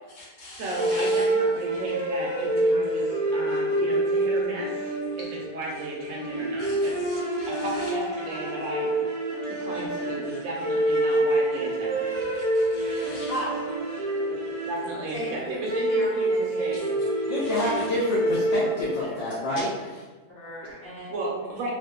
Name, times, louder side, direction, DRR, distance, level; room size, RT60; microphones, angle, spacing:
voice 1, 0.1-1.3 6.6-7.9 12.3-13.4 16.7-16.8 17.4-17.9, left 1 dB, 60° left, -6 dB, 0.9 m, -42 dB
voice 2, 0.6-4.9 5.5-6.9 7.5-9.0 9.4-12.2 14.3-14.4 14.7-16.8 21.1-21.7, right 2 dB, 70° right, -4 dB, 1.0 m, -34 dB
sound 1, 0.7-19.2, right 1 dB, 55° right, 0.3 m, -27 dB
voice 3, 12.1-13.2 14.0-14.7 15.1-15.6 15.9-16.4 19.0-19.4 19.7-19.8 20.3-21.1, equal, 10° right, -10 dB, 0.8 m, -41 dB
voice 4, 17.3-19.7, left 1 dB, 75° left, -6 dB, 0.5 m, -27 dB
2.5 x 2.4 x 2.2 m, 1.3 s
omnidirectional pair, 1.6 m